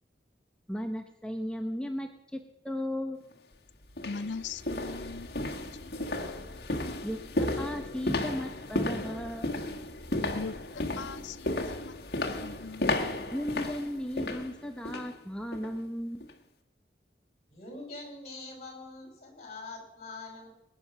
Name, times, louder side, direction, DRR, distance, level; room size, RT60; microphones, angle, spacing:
voice 1, 0.7-2.4 2.6-3.2 7.0-9.5 13.3-16.2, equal, 5° left, 5 dB, 0.9 m, -35 dB
sound 1, 3.2-3.3 3.9-15.2 15.5-15.8 16.2-16.3, left 2 dB, 60° left, 1.6 m, -34 dB
voice 2, 4.0-5.5 5.8-6.6 10.3-12.0 12.2-12.9, left 4 dB, 90° left, 14 dB, 0.5 m, -41 dB
voice 3, 17.5-20.5, left 3 dB, 40° left, 2 dB, 4.6 m, -44 dB
20.5 x 9.9 x 6.0 m, 0.88 s
head